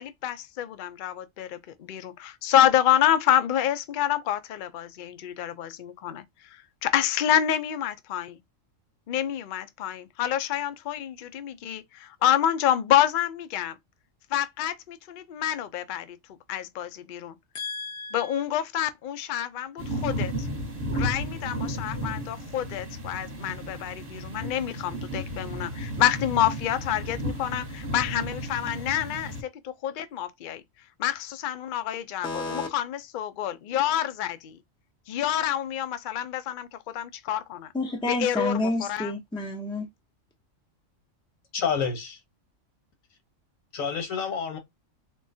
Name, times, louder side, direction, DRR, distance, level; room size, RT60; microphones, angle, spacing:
voice 1, 0.0-6.2 6.5-8.4 9.1-13.8 14.3-16.2 16.5-17.3 18.1-20.5 20.9-29.3 29.6-30.6 31.0-34.6 35.1-37.7 38.1-39.1, left 11 dB, 65° left, 0.5 m, -27 dB
voice 2, 17.5-18.4 32.2-32.7 37.7-39.8, left 2 dB, 5° left, 0.3 m, -30 dB
sound 1, 19.8-29.4, equal, 30° right, 0.9 m, -33 dB
voice 3, 41.5-42.2 43.7-44.6, left 6 dB, 90° left, 1.5 m, -28 dB
3.7 x 3.0 x 2.6 m
omnidirectional pair, 1.4 m